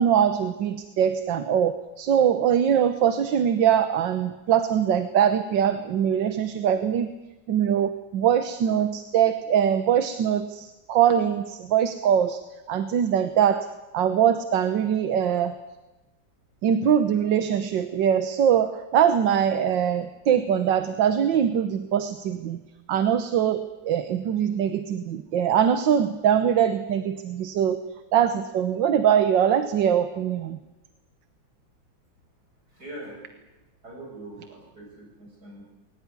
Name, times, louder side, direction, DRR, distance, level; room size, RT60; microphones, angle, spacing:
voice 1, 0.0-7.1 7.5-12.4 12.7-13.7 13.9-15.6 16.6-22.6 22.9-27.8 28.1-30.6, right 9 dB, 75° right, 10 dB, 1.7 m, -22 dB
voice 2, 32.7-33.3 33.8-35.6, right 1 dB, 55° right, -1 dB, 8.0 m, -42 dB
21.5 x 18.5 x 9.7 m, 1.1 s
omnidirectional pair, 2.1 m